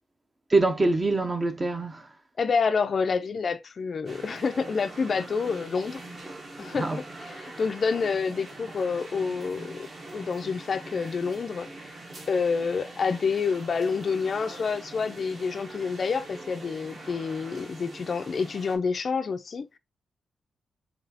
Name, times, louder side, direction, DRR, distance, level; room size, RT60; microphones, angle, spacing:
voice 1, 0.5-2.1 6.7-7.0, right 2 dB, 20° right, 0.5 m, -24 dB
voice 2, 2.4-6.0 6.6-9.9 10.1-12.0 12.3-19.8, left 5 dB, 40° left, 0.3 m, -28 dB
sound 1, 4.1-18.8, right 2 dB, 35° right, 0.9 m, -43 dB
4.0 x 3.2 x 2.7 m
wide cardioid pair, 175°, 0 cm